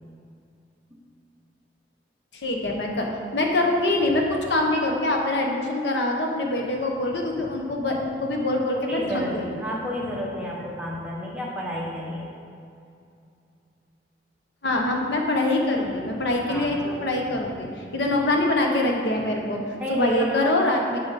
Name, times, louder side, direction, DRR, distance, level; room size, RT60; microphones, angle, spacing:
voice 1, 2.4-3.1 3.3-9.6 14.6-19.6 19.9-21.0, left 2 dB, 80° left, 1 dB, 1.1 m, -24 dB
voice 2, 8.9-12.3 16.5-16.8 18.3-18.4 19.8-20.2, equal, 5° right, -5 dB, 1.2 m, -31 dB
8.0 x 6.8 x 4.2 m, 2.5 s
head